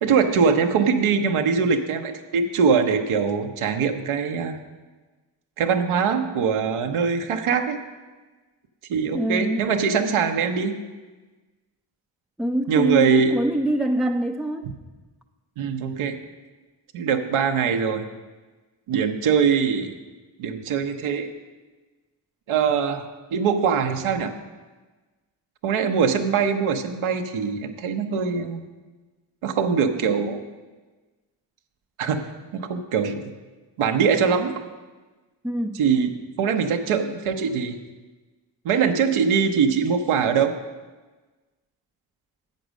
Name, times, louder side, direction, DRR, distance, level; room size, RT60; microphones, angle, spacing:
voice 1, 0.0-4.6 5.6-7.8 8.9-10.7 12.7-13.3 15.6-16.2 16.9-18.0 18.9-20.0 20.4-21.3 22.5-24.3 25.6-28.6 29.4-30.4 32.0-32.2 32.5-33.3 33.8-34.6 35.7-36.1 36.4-37.8 38.6-40.5, right 6 dB, 90° right, 5 dB, 0.9 m, -22 dB
voice 2, 9.1-9.7 12.4-14.7 35.4-35.8, right 1 dB, ahead, 3 dB, 0.3 m, -24 dB
7.9 x 6.5 x 6.3 m, 1.3 s
cardioid pair, 50°, 48 cm